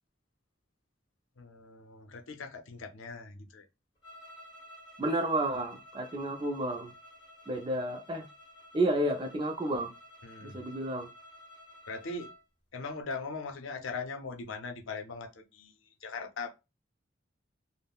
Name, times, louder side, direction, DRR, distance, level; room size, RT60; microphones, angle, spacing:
voice 1, 1.4-3.7 10.2-10.6 11.9-12.3 12.7-15.7 16.0-16.5, left 4 dB, 85° left, 0.5 m, -40 dB
sound 1, 4.0-12.4, equal, 25° left, 1.2 m, -53 dB
voice 2, 5.0-6.9 7.5-8.3 8.7-9.9 10.4-11.1, right 1 dB, 25° right, 0.4 m, -31 dB
3.5 x 2.0 x 2.3 m
head